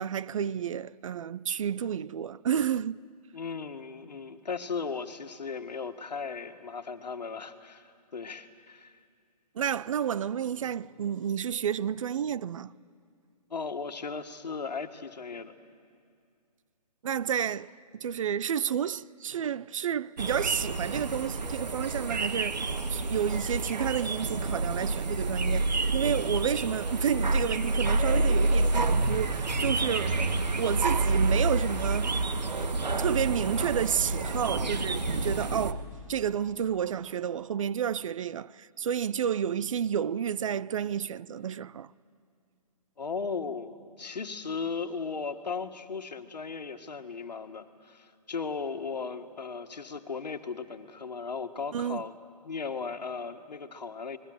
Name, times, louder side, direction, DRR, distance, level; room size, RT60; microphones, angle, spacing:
voice 1, 0.0-3.0 9.6-12.7 17.0-22.6 22.9-30.2 30.6-32.1 33.0-41.9 51.7-52.0, right 8 dB, 50° right, 0.5 m, -30 dB
voice 2, 3.3-8.9 13.5-15.5 43.0-52.1 52.4-54.2, left 5 dB, 80° left, 1.7 m, -36 dB
sound 1, 20.2-35.7, right 2 dB, 85° right, 1.5 m, -28 dB
29.0 x 20.5 x 7.9 m
hypercardioid pair, 145°, 21 cm